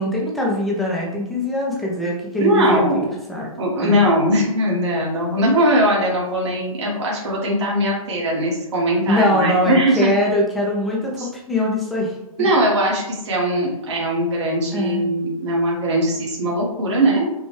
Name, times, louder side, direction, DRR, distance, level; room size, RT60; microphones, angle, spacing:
voice 1, 0.0-3.5 3.8-4.0 9.0-12.5 14.7-15.0, left 1 dB, ahead, -4 dB, 0.4 m, -22 dB
voice 2, 2.4-3.1 3.6-10.1 11.2-11.3 12.4-17.3, equal, 50° right, -4 dB, 1.4 m, -20 dB
5.3 x 2.2 x 3.1 m, 0.89 s
hypercardioid pair, 155°, 19 cm